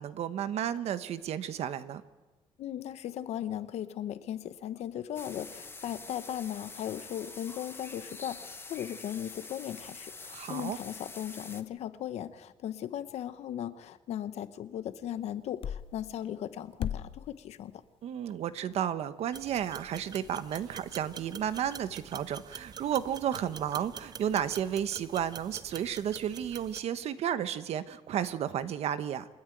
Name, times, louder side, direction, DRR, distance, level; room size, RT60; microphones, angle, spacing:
voice 1, 0.0-2.0 10.3-10.8 18.0-29.3, right 9 dB, 75° right, 12 dB, 1.1 m, -32 dB
voice 2, 2.6-17.7, left 10 dB, 80° left, 12 dB, 1.1 m, -37 dB
sound 1, 5.1-11.6, left 3 dB, 20° left, 1.2 m, -46 dB
sound 2, 15.6-15.9 16.8-17.2, left 9 dB, 60° left, 0.7 m, -34 dB
sound 3, 19.3-26.8, right 6 dB, 35° right, 0.6 m, -46 dB
28.0 x 10.0 x 9.2 m, 1.2 s
cardioid pair, 125°, 11 cm